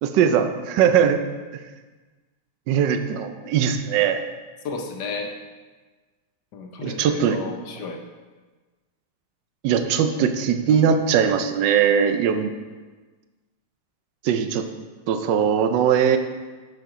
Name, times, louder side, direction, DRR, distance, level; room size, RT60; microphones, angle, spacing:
voice 1, 0.0-1.2 2.7-4.2 6.8-7.4 9.6-12.5 14.2-14.7 15.1-16.2, right 8 dB, 70° right, 8 dB, 1.2 m, -20 dB
voice 2, 4.6-5.3 6.5-8.0, left 4 dB, 65° left, 3 dB, 1.3 m, -33 dB
6.6 x 6.5 x 4.8 m, 1.3 s
omnidirectional pair, 2.2 m